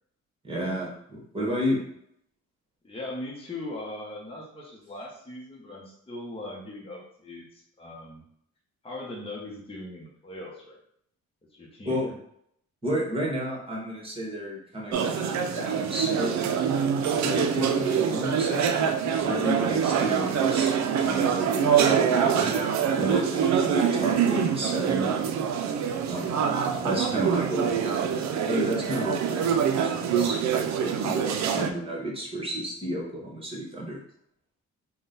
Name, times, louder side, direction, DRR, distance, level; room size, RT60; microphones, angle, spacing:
voice 1, 0.4-1.8 11.8-12.1 12.8-16.3 17.2-18.7 19.2-20.7 21.0-25.1 26.1-28.0 28.4-29.4 29.7-30.4 30.8-34.0, equal, 20° right, -3 dB, 1.5 m, -31 dB
voice 2, 2.8-8.2 8.8-10.8 11.5-12.2 16.6-16.7, left 2 dB, 20° left, -2 dB, 0.9 m, -40 dB
sound 1, 14.9-31.7, right 7 dB, 65° right, 0.5 m, -25 dB
3.8 x 2.3 x 3.9 m, 0.70 s
cardioid pair, 90°, 30 cm